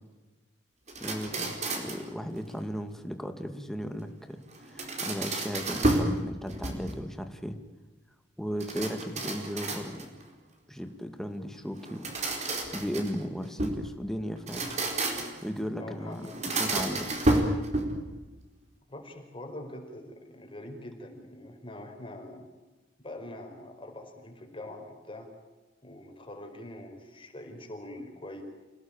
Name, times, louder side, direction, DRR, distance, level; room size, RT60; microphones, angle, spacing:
sound 1, 0.9-2.1 4.5-6.2 6.5-7.1 8.6-10.2 11.8-13.8 14.4-15.5 16.2-18.1, right 2 dB, 40° right, 4.4 m, -30 dB
voice 1, 1.0-7.6 8.4-10.1 10.7-12.3 12.7-14.7 15.4-17.1, equal, ahead, 7 dB, 2.2 m, -36 dB
voice 2, 15.8-16.3 18.9-22.5 23.0-25.3 25.8-28.4, left 1 dB, 30° left, 3 dB, 5.0 m, -44 dB
28.0 x 17.5 x 9.0 m, 1.2 s
head